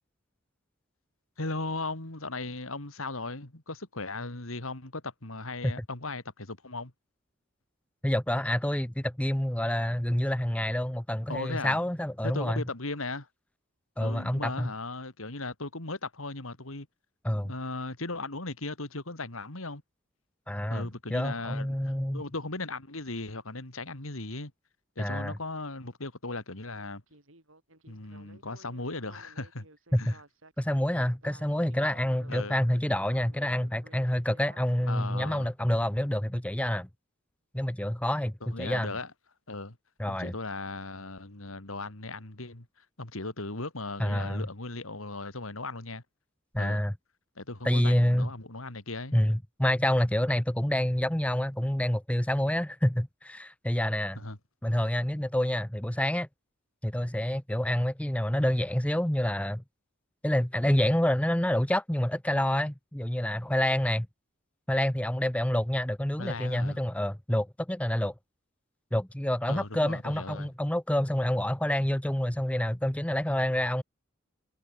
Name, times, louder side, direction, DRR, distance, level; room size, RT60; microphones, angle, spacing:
voice 1, 1.4-6.9 11.3-11.8 12.2-13.3 14.0-16.9 17.4-19.8 20.7-21.8 22.1-24.5 25.0-27.0 27.9-29.7 29.9-30.2 32.3-32.6 34.9-35.5 38.5-39.1 39.5-39.8 40.1-46.0 46.6-46.8 47.4-49.1 54.1-54.4 66.2-66.8 69.5-70.5, left 2 dB, 80° left, 3.2 m, -37 dB
voice 2, 8.0-12.6 14.0-14.7 17.2-17.5 20.5-22.2 25.0-25.4 29.9-30.1 30.6-36.9 37.5-38.9 40.0-40.3 44.0-44.5 46.5-46.9 47.6-48.3 49.1-54.2 54.6-56.3 56.8-59.6 60.2-64.1 64.7-68.1 68.9-73.8, left 1 dB, 5° left, 0.8 m, -28 dB
Speech synthesizer, 27.1-35.4, right 2 dB, 70° right, 7.8 m, -55 dB
head